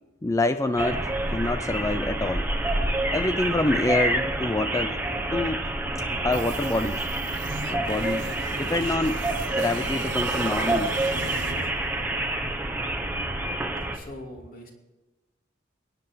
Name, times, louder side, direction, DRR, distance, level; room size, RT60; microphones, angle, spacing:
voice 1, 0.2-2.5 3.1-5.0 5.3-5.6 6.2-7.1 7.7-8.3 8.5-9.2 9.5-10.9, left 2 dB, 15° left, 10 dB, 0.4 m, -26 dB
sound 1, 0.8-14.0, right 1 dB, 10° right, 1.0 m, -28 dB
sound 2, 6.3-12.3, right 5 dB, 65° right, 0.8 m, -39 dB
voice 2, 13.9-14.7, left 1 dB, 45° left, 1 dB, 2.7 m, -41 dB
23.0 x 9.9 x 4.6 m, 1.1 s
head